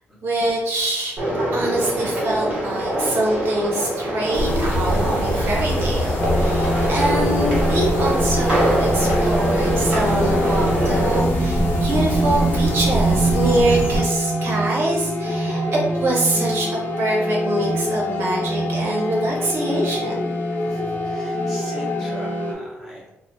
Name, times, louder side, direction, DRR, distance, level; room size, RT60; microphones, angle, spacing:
voice 1, 0.2-20.4, right 1 dB, 60° right, -3 dB, 0.7 m, -24 dB
sound 1, 1.2-11.2, right 1 dB, 30° right, 1.0 m, -24 dB
sound 2, 4.3-14.0, right 1 dB, 70° left, 0.8 m, -23 dB
sound 3, 6.2-22.5, equal, 40° left, 0.4 m, -25 dB
voice 2, 15.4-15.8 20.6-23.1, equal, ahead, -9 dB, 1.1 m, -40 dB
3.1 x 2.0 x 2.6 m, 0.89 s
wide cardioid pair, 170°, 5 cm